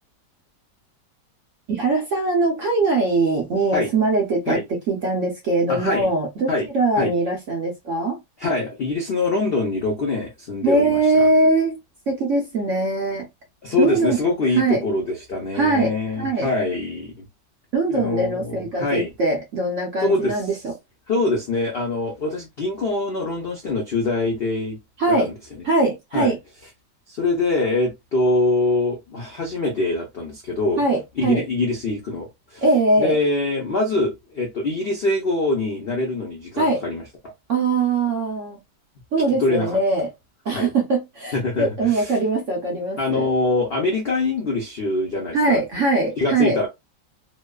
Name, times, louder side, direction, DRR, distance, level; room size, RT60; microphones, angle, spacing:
voice 1, 1.7-4.6 4.9-8.2 10.6-11.8 12.1-13.3 13.8-14.2 14.6-14.8 15.5-15.9 16.2-16.5 17.7-20.7 25.0-25.3 25.6-26.4 30.8-31.4 32.6-33.2 36.6-36.8 37.5-38.6 39.1-40.1 40.4-43.3 45.3-46.6, right 2 dB, 65° right, 0.8 m, -21 dB
voice 2, 5.7-6.1 6.5-6.7 7.0-7.1 8.4-11.3 13.6-17.2 17.9-19.1 20.0-20.5 21.1-24.8 25.1-25.6 26.1-26.3 27.1-30.8 31.2-32.6 33.0-37.0 39.3-39.8 40.5-40.7 41.3-42.1 43.0-45.6 46.2-46.7, left 2 dB, 70° left, 0.5 m, -24 dB
2.9 x 2.0 x 2.2 m
omnidirectional pair, 1.9 m